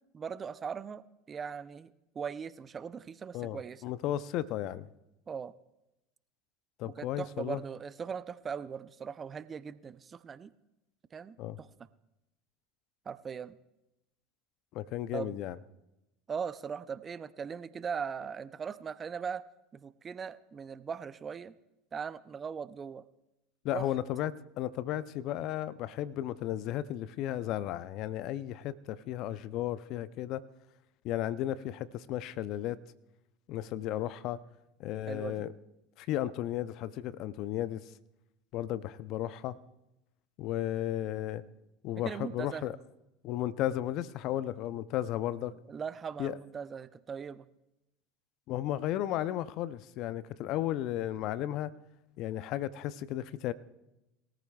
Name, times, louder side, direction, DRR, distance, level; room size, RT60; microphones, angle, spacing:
voice 1, 0.1-3.8 5.3-5.5 6.8-10.5 11.1-11.7 13.1-13.6 15.1-15.4 16.3-19.4 19.7-21.5 21.9-23.0 23.7-23.9 35.1-35.5 42.0-42.7 45.7-47.5, right 6 dB, 30° right, 15 dB, 0.5 m, -39 dB
voice 2, 3.3-4.9 6.8-7.6 11.4-11.6 14.7-15.6 23.6-30.4 31.0-32.8 33.5-34.4 34.8-35.5 36.0-37.8 38.5-39.6 40.4-41.4 41.8-42.8 43.2-45.5 46.2-46.4 48.5-51.7 52.2-53.5, left 12 dB, 55° left, 16 dB, 0.5 m, -34 dB
21.0 x 14.0 x 2.3 m, 0.92 s
hypercardioid pair, 80°, 0 cm